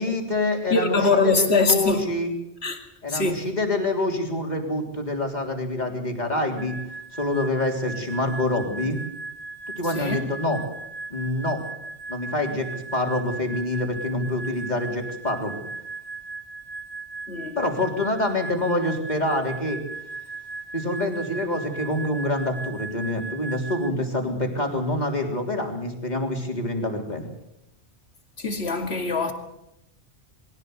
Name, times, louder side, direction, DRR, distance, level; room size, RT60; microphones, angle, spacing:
voice 1, 0.0-2.3 3.0-6.8 7.1-9.0 9.8-10.6 11.1-11.6 12.1-15.6 17.6-19.8 20.7-27.3, left 1 dB, 40° left, 3.7 m, -26 dB
voice 2, 0.7-2.0 2.6-2.8 3.1-3.5 9.9-10.3 17.3-17.6 28.4-29.3, left 3 dB, 70° left, 2.7 m, -23 dB
sound 1, 6.6-23.9, right 3 dB, 25° right, 0.9 m, -38 dB
22.0 x 16.5 x 7.9 m
omnidirectional pair, 1.1 m